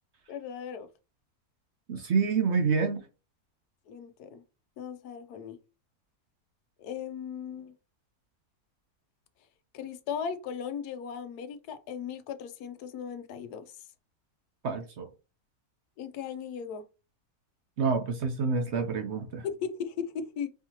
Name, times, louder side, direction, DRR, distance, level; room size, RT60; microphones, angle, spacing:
voice 1, 0.3-0.9 3.9-4.4 4.8-5.6 6.8-7.7 9.7-13.6 16.0-16.8 19.4-20.5, left 7 dB, 90° left, 1.1 m, -37 dB
voice 2, 1.9-3.0 14.6-15.1 17.8-19.4, right 5 dB, 60° right, 0.8 m, -27 dB
4.7 x 2.8 x 2.8 m
omnidirectional pair, 1.6 m